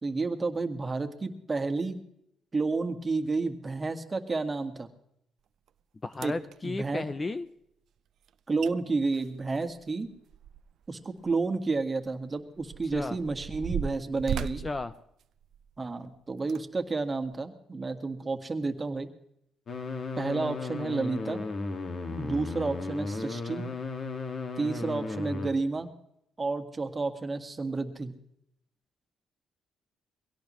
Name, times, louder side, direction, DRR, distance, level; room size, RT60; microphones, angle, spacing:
voice 1, 0.0-2.0 2.5-4.9 6.2-6.3 6.6-7.1 8.5-10.1 10.9-14.6 15.8-19.1 20.2-21.4 22.1-23.7 24.6-25.9 26.4-28.1, right 3 dB, 25° right, 6 dB, 1.7 m, -31 dB
sound 1, 5.7-5.8 6.1-6.6 8.3-8.4 8.6-8.7 9.1-10.9 11.2-11.3 12.0-15.8 16.4-16.6 17.2-17.3, right 9 dB, 70° right, 0.6 m, -37 dB
voice 2, 6.0-7.5 12.9-13.2 14.3-14.9, left 3 dB, 25° left, 12 dB, 0.7 m, -34 dB
sound 2, 19.7-25.5, left 3 dB, 50° left, 2.0 m, -35 dB
22.5 x 17.0 x 3.1 m, 0.75 s
cardioid pair, 90°, 0 cm